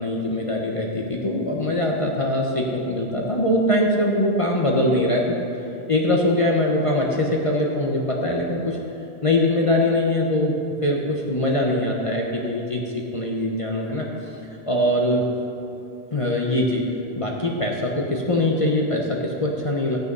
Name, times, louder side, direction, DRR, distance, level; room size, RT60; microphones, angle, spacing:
voice 1, 0.0-5.4 5.9-8.8 9.2-10.5 10.8-14.1 14.7-15.2 16.1-16.8 17.2-20.0, left 1 dB, 30° left, -2 dB, 1.1 m, -22 dB
13.0 x 9.4 x 5.5 m, 2.8 s
omnidirectional pair, 1.1 m